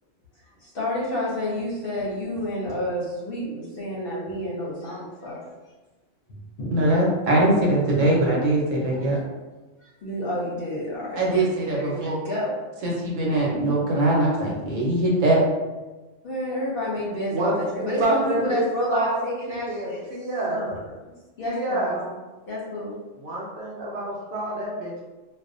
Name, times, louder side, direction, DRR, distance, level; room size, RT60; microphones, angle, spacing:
voice 1, 0.6-5.4 6.3-6.8 9.1-9.2 9.8-12.6 16.2-20.0 20.5-20.8 21.4-22.1 22.5-22.9, left 1 dB, 55° left, -6 dB, 0.7 m, -30 dB
voice 2, 6.7-9.2 11.2-12.2 12.8-15.4, right 1 dB, 80° right, -3 dB, 1.1 m, -21 dB
voice 3, 18.0-18.6 18.9-19.2 19.5-20.7 21.5-22.0 23.2-25.1, right 2 dB, 60° right, -4 dB, 0.8 m, -27 dB
2.5 x 2.0 x 2.5 m, 1.2 s
omnidirectional pair, 1.3 m